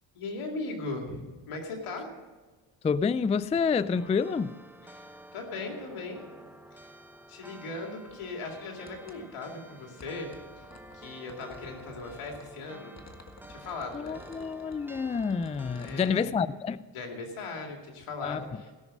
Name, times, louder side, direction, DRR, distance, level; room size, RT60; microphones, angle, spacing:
voice 1, 0.1-1.2 1.5-2.1 4.8-6.2 6.7-6.9 7.3-10.7 10.9-13.0 13.5-14.2 15.8-16.4 16.9-18.7, left 3 dB, 85° left, 2.5 m, -38 dB
voice 2, 2.8-4.5 13.9-16.8 18.2-18.4, left 5 dB, 15° left, 0.3 m, -28 dB
sound 1, 3.9-16.1, right 1 dB, 5° right, 1.1 m, -50 dB
sound 2, 8.1-9.2 10.0-12.5 13.0-16.1, left 2 dB, 30° left, 1.7 m, -53 dB
17.0 x 6.4 x 7.5 m
supercardioid pair, 60°, 49 cm